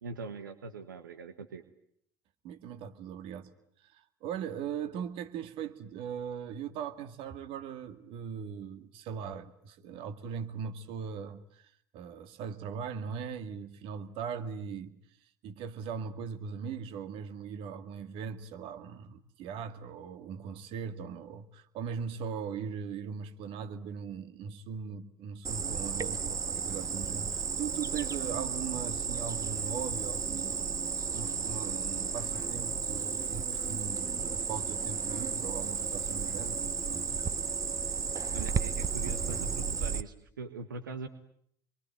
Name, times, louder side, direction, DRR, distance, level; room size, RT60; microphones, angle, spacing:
voice 1, 0.0-1.6 38.3-41.1, right 3 dB, 90° right, 9 dB, 1.4 m, -41 dB
voice 2, 2.4-3.5 3.8-30.8 31.1-37.1, right 7 dB, 60° right, 9 dB, 2.1 m, -40 dB
Cricket, 25.4-40.0, right 6 dB, 35° right, 1.2 m, -33 dB
28.0 x 23.0 x 9.1 m, 0.68 s
hypercardioid pair, 65°, 10 cm